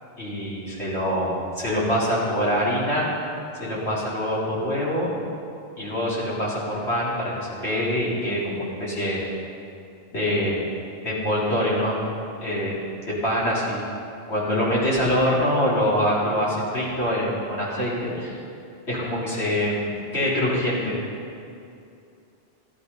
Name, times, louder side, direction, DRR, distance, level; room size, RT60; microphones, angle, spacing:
voice 1, 0.2-3.1 3.5-5.1 5.8-7.3 7.6-9.2 10.1-10.6 11.0-12.0 12.4-12.7 13.1-13.8 14.3-18.4 18.9-21.0, equal, 85° left, -8 dB, 4.1 m, -24 dB
15.0 x 11.5 x 5.5 m, 2.6 s
omnidirectional pair, 1.1 m